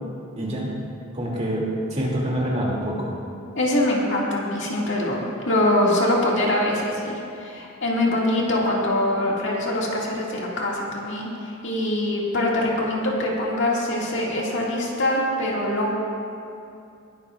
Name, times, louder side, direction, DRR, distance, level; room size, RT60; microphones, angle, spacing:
voice 1, 0.4-0.7 1.1-3.1, right 1 dB, 30° right, -4 dB, 2.6 m, -26 dB
voice 2, 3.6-15.9, left 1 dB, 60° left, -4 dB, 2.1 m, -23 dB
21.0 x 12.0 x 2.5 m, 2.6 s
head